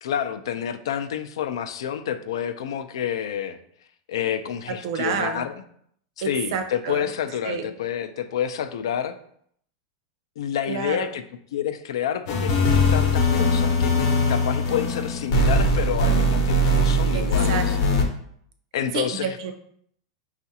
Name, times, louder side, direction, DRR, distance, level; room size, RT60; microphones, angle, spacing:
voice 1, 0.0-3.6 4.1-5.5 6.2-9.2 10.4-11.2 11.5-17.8 18.7-19.4, left 9 dB, 85° left, 9 dB, 0.4 m, -29 dB
voice 2, 4.8-5.5 6.2-7.1 7.4-7.7 10.7-11.1 17.1-18.1 18.9-19.5, right 6 dB, 60° right, 7 dB, 0.6 m, -29 dB
sound 1, 12.3-18.0, left 1 dB, 55° left, 0.8 m, -21 dB
5.6 x 2.4 x 2.8 m, 0.66 s
supercardioid pair, 155°, 3 cm